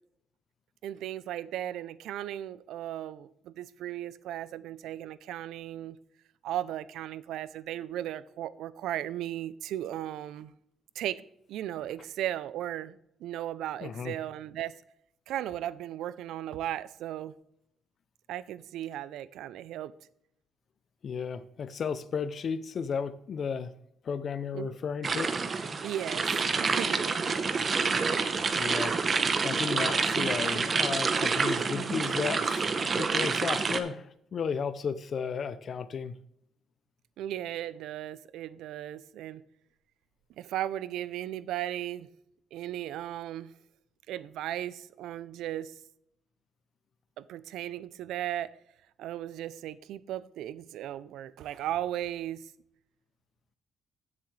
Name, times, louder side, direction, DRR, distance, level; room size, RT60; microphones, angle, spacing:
voice 1, 0.8-6.0 6.4-10.5 11.0-11.2 11.5-14.7 15.3-17.3 18.3-19.9 24.5-24.7 25.8-27.2 27.6-27.8 37.2-39.4 40.4-42.1 42.5-43.5 44.1-45.7 47.2-48.5 49.0-52.4, right 12 dB, 80° right, 0.4 m, -36 dB
voice 2, 13.8-14.2 21.0-23.7 24.0-25.3 28.6-28.9 29.4-36.1, left 6 dB, 45° left, 0.5 m, -34 dB
sound 1, 25.0-33.8, right 4 dB, 30° right, 0.8 m, -28 dB
15.0 x 6.8 x 3.2 m
cardioid pair, 130°, 0 cm